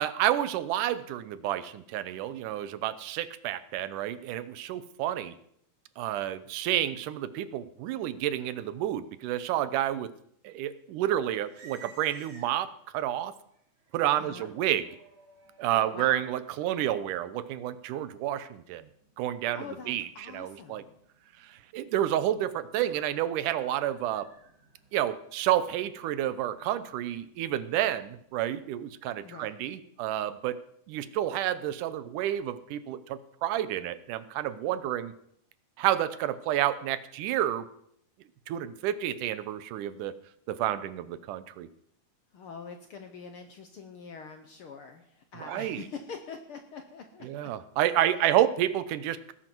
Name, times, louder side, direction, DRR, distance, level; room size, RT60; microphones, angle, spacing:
voice 1, 0.0-5.4 6.0-10.1 10.4-13.3 13.9-14.9 15.6-18.9 19.2-20.8 21.4-24.3 24.9-30.6 30.9-35.1 35.8-37.7 38.5-40.2 40.5-41.7 45.4-45.8 47.2-49.3, right 12 dB, 85° right, 14 dB, 2.3 m, -30 dB
sound 1, 11.2-12.9 13.5-29.3, right 4 dB, 55° right, 3.7 m, -58 dB
voice 2, 14.2-14.5 15.7-16.2 19.5-20.9 29.2-29.5 42.3-47.3, left 5 dB, 65° left, 6 dB, 1.4 m, -44 dB
19.0 x 10.5 x 4.6 m, 0.70 s
omnidirectional pair, 3.6 m